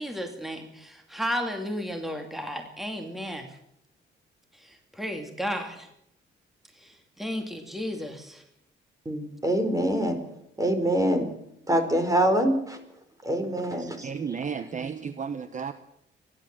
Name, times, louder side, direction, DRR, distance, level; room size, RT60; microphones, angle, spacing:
voice 1, 0.0-3.5 4.6-5.9 6.8-8.4, equal, ahead, 5 dB, 2.5 m, -33 dB
voice 2, 9.0-10.2 10.6-11.3 11.7-12.8 13.2-14.4, right 1 dB, 15° right, 8 dB, 4.6 m, -25 dB
voice 3, 14.0-15.7, right 6 dB, 40° right, 11 dB, 1.1 m, -33 dB
29.5 x 11.5 x 7.6 m, 0.78 s
cardioid pair, 90°, 20 cm